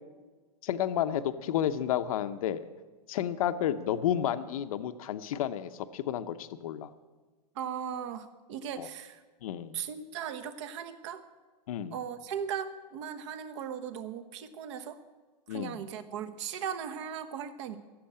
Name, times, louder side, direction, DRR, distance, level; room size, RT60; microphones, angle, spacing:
voice 1, 0.6-2.7 3.1-6.9 8.8-8.9 9.4-9.8 11.7-11.9 15.5-15.8, left 10 dB, 55° left, 10 dB, 0.8 m, -31 dB
voice 2, 7.5-9.2 9.7-11.2 11.9-15.0 15.5-17.8, right 8 dB, 45° right, 11 dB, 1.2 m, -38 dB
16.0 x 7.7 x 8.7 m, 1.4 s
hypercardioid pair, 155°, 21 cm